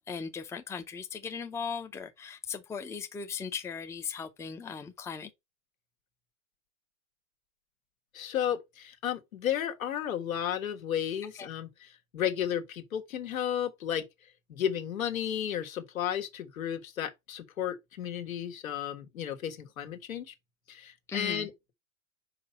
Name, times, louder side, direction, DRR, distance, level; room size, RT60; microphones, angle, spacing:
voice 1, 0.1-5.3 11.4-11.5 21.1-21.5, left 6 dB, 5° left, 0.5 m, -38 dB
voice 2, 8.1-14.0 14.5-20.3 20.7-21.7, left 9 dB, 85° left, 1.6 m, -33 dB
4.9 x 4.6 x 4.1 m
hypercardioid pair, 115°, 40 cm